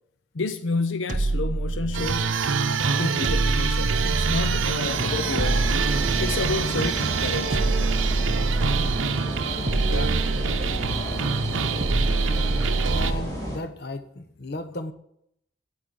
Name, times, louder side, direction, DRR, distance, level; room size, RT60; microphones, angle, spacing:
voice 1, 0.3-2.5 3.0-5.8 6.2-7.6, left 3 dB, 80° left, 0.7 m, -30 dB
sound 1, 1.1-2.4 3.2-4.9 5.4-6.8 7.5-9.1 9.7-11.1 11.8-13.4, right 2 dB, 40° right, 0.7 m, -26 dB
sound 2, 1.9-13.1, right 6 dB, 90° right, 0.7 m, -26 dB
sound 3, 4.8-13.6, equal, 20° left, 2.9 m, -32 dB
voice 2, 9.8-10.2 12.9-14.9, left 2 dB, 55° left, 0.9 m, -34 dB
8.7 x 8.6 x 6.8 m
head